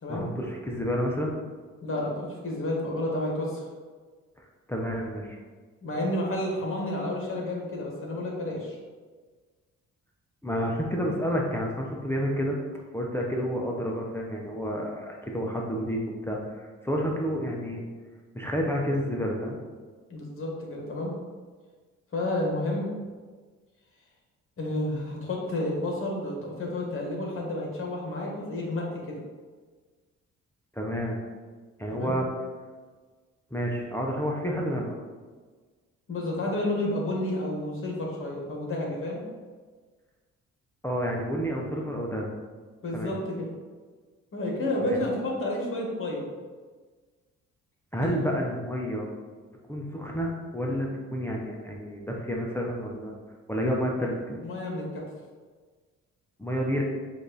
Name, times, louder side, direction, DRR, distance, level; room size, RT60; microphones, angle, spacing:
voice 1, 0.1-1.4 4.7-5.4 10.4-12.6 12.9-17.8 18.3-19.6 30.7-31.2 31.8-32.3 33.5-35.0 40.8-42.3 42.9-43.1 44.9-45.0 47.9-49.1 49.7-53.1 53.5-54.4 56.4-56.8, equal, 10° left, -2 dB, 0.6 m, -30 dB
voice 2, 1.8-3.7 5.8-8.8 20.1-21.1 22.1-22.9 24.6-29.2 31.9-32.2 36.1-39.2 42.8-43.5 44.3-46.3 48.0-48.1 54.4-55.0, left 1 dB, 45° left, -1 dB, 1.4 m, -30 dB
5.1 x 2.6 x 3.9 m, 1.4 s
cardioid pair, 90°, 30 cm